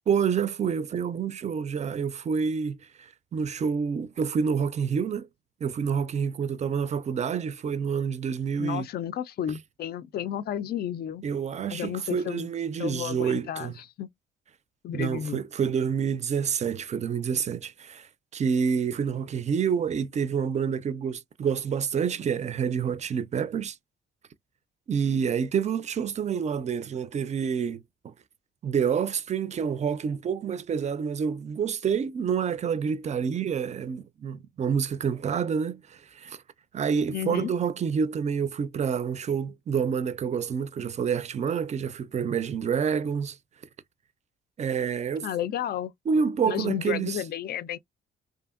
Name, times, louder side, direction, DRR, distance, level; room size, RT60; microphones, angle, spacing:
voice 1, 0.1-5.3 5.6-8.9 11.2-13.7 14.9-23.8 24.9-28.1 28.6-36.4 36.7-43.4 44.6-45.3 46.1-47.2, right 6 dB, 35° right, 0.4 m, -28 dB
voice 2, 8.6-11.2 11.7-12.5 12.8-14.1 14.8-15.4 37.1-37.5 45.2-45.9 46.4-47.8, left 10 dB, 55° left, 0.4 m, -32 dB
2.7 x 2.5 x 2.4 m
cardioid pair, 90°, 20 cm